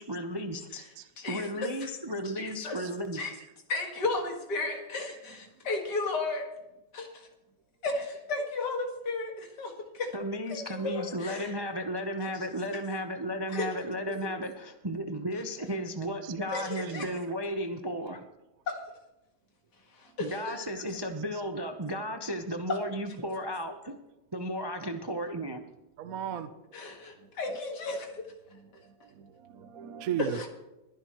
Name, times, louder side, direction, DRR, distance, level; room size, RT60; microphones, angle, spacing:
voice 1, 0.0-0.8 1.3-3.2 10.1-18.2 20.2-23.9 24.3-25.6, equal, 25° right, 5 dB, 0.5 m, -34 dB
voice 2, 1.2-1.9 2.4-2.8 3.1-3.3 3.7-6.5 6.9-7.3 7.8-10.2 10.5-11.5 12.4-12.5 13.5-13.7 16.5-17.1 18.7-18.9 20.0-20.6 22.7-22.8 26.7-28.2 30.2-30.5, left 3 dB, 80° left, 2 dB, 2.4 m, -34 dB
voice 3, 16.2-17.0 20.7-20.8 21.3-21.4 26.0-26.5 27.2-27.3 28.5-30.5, right 9 dB, 65° right, 10 dB, 1.1 m, -38 dB
22.0 x 10.5 x 3.1 m, 0.95 s
omnidirectional pair, 1.8 m